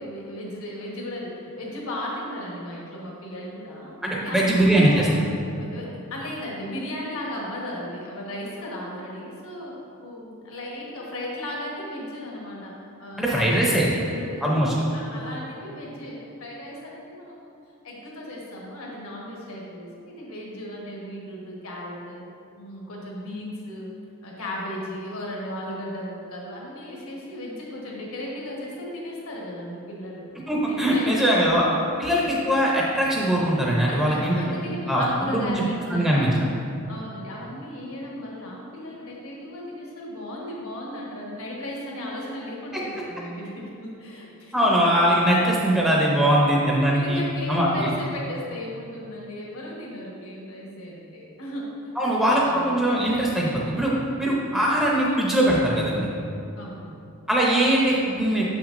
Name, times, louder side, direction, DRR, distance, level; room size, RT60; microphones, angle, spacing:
voice 1, 0.0-3.9 4.2-5.2 5.5-9.7 10.0-12.7 13.0-17.5 17.8-22.2 22.6-23.9 24.2-30.3 30.7-31.8 32.1-32.5 33.8-36.6 36.9-44.9 46.4-51.7 52.0-52.8 56.6-57.1, left 1 dB, 75° left, -3 dB, 1.3 m, -36 dB
voice 2, 4.0-5.0 13.2-13.9 14.4-14.7 30.5-31.6 32.0-34.5 34.9-36.3 44.5-47.2 47.5-47.9 52.0-56.1 57.3-58.5, right 1 dB, ahead, -5 dB, 0.5 m, -21 dB
6.9 x 5.9 x 2.5 m, 2.6 s
head